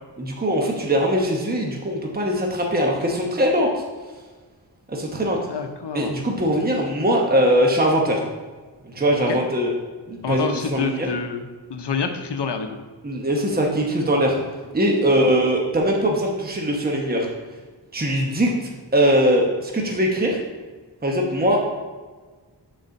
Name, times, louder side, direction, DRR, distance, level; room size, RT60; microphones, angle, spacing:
voice 1, 0.2-3.7 4.9-5.4 5.9-8.2 8.9-9.7 10.1-11.1 13.0-14.4 14.7-17.3 17.9-18.5 18.9-20.4 21.0-21.6, equal, 20° right, 0 dB, 1.0 m, -21 dB
voice 2, 5.5-6.1 9.3-9.4 10.2-12.7 15.2-15.3, left 5 dB, 75° left, 7 dB, 0.8 m, -27 dB
6.6 x 4.1 x 5.2 m, 1.4 s
wide cardioid pair, 80°, 42 cm